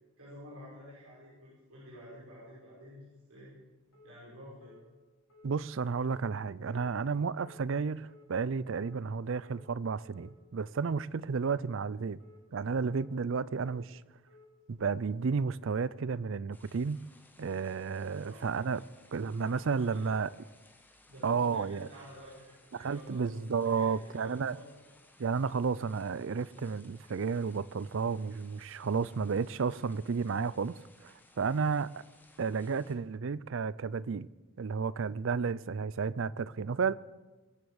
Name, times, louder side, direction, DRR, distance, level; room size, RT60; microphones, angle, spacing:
voice 1, 0.2-3.5 4.0-4.7 18.1-18.4 18.7-18.8 19.8-20.1 21.1-23.2 23.6-24.8, equal, 85° right, 6.1 m, -50 dB
sound 1, 3.9-4.1 4.6-4.8 5.3-5.5 6.0-6.2 6.7-6.9 7.4-7.6 8.1-8.3 8.7-9.0 9.4-9.6 10.1-10.3 10.8-11.0 11.5-11.7 12.2-12.4 12.9-13.1 13.6-13.8 14.3-14.5, left 3 dB, 85° left, 3.0 m, -58 dB
voice 2, 5.4-12.2 12.5-14.0 14.7-17.0 17.4-18.8 19.1-20.3 21.2-21.9 22.7-24.5 25.2-30.7 31.0-31.9 32.4-34.3 34.6-36.9, right 5 dB, 60° right, 0.4 m, -32 dB
sound 2, 16.5-33.0, left 2 dB, 10° left, 1.1 m, -62 dB
22.5 x 7.9 x 7.0 m
head